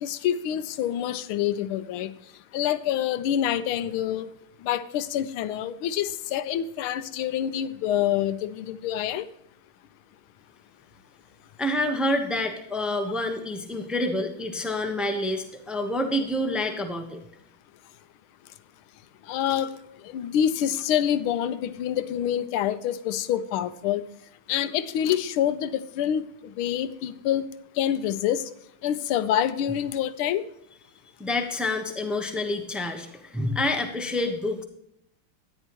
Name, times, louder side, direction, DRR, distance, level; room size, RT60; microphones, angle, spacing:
voice 1, 0.0-2.1 2.5-4.3 4.6-9.3 19.3-19.7 20.0-24.0 24.5-27.5 27.8-28.5 28.8-30.5, left 10 dB, 80° left, 13 dB, 1.5 m, -26 dB
voice 2, 11.6-17.2 31.2-34.6, left 1 dB, ahead, 4 dB, 0.3 m, -28 dB
13.5 x 10.0 x 3.0 m, 0.77 s
omnidirectional pair, 2.4 m